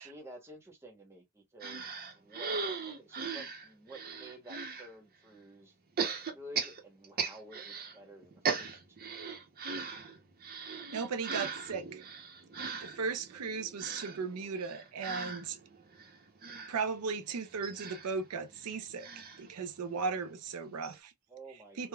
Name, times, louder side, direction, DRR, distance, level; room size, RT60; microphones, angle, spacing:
voice 1, 0.0-5.7 6.3-9.2 21.3-21.9, right 1 dB, 10° right, 0.8 m, -52 dB
sound 1, 1.6-4.9 6.0-8.0 8.2-20.2 20.5-20.6 20.8-21.0, right 5 dB, 45° right, 0.6 m, -39 dB
voice 2, 10.9-12.0 12.8-15.6 16.7-19.1 19.4-21.1 21.8-21.9, right 5 dB, 85° right, 0.5 m, -36 dB
3.3 x 2.0 x 2.2 m
head